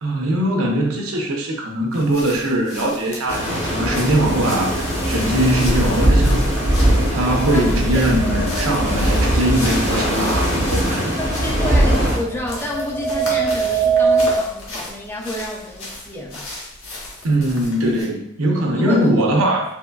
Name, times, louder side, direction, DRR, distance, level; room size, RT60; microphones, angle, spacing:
voice 1, 0.0-6.6 7.1-11.3 17.2-19.6, right 1 dB, 85° right, 1 dB, 0.7 m, -21 dB
sound 1, 1.9-18.1, left 2 dB, 80° left, 0.9 m, -36 dB
sound 2, 3.3-12.2, right 1 dB, 55° left, 1.3 m, -20 dB
voice 2, 7.5-8.1 11.2-16.5 18.8-19.4, left 1 dB, 10° left, 0 dB, 0.3 m, -30 dB
sound 3, 8.2-8.9 12.2-14.4, right 5 dB, 40° left, 0.8 m, -21 dB
3.6 x 2.9 x 2.3 m, 0.77 s
head